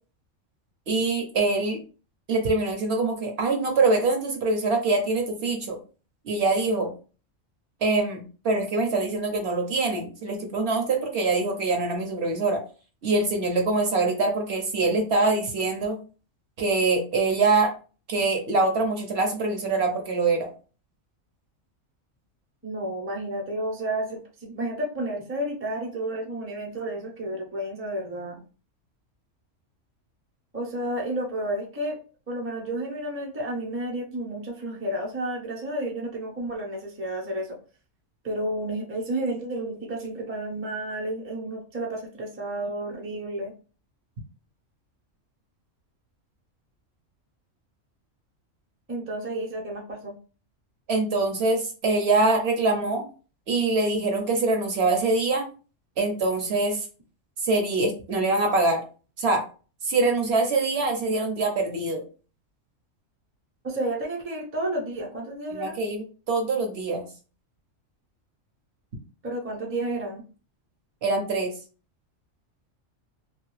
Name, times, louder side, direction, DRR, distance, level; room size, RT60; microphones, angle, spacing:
voice 1, 0.9-1.8 2.3-5.8 6.2-6.9 7.8-12.6 13.0-16.0 16.6-17.7 18.1-20.5 50.9-53.0 53.5-55.4 56.0-56.9 57.4-58.8 59.2-59.4 59.8-62.0 65.5-67.0 71.0-71.5, right 3 dB, 60° right, 3 dB, 0.8 m, -24 dB
voice 2, 22.6-28.4 30.5-32.0 32.3-37.6 38.2-43.5 48.9-50.2 63.6-65.8 69.2-70.2, right 1 dB, 15° right, 0 dB, 0.5 m, -31 dB
2.7 x 2.4 x 3.1 m, 0.36 s
omnidirectional pair, 1.4 m